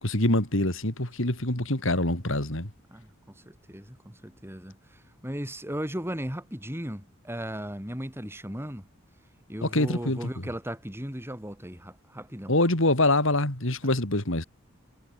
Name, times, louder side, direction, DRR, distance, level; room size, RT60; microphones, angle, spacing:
voice 1, 0.0-2.7 9.6-10.3 12.5-14.4, left 1 dB, 65° left, 4.5 m, -25 dB
voice 2, 3.4-8.9 9.5-12.6 13.8-13.9, equal, 10° right, 6.7 m, -36 dB
head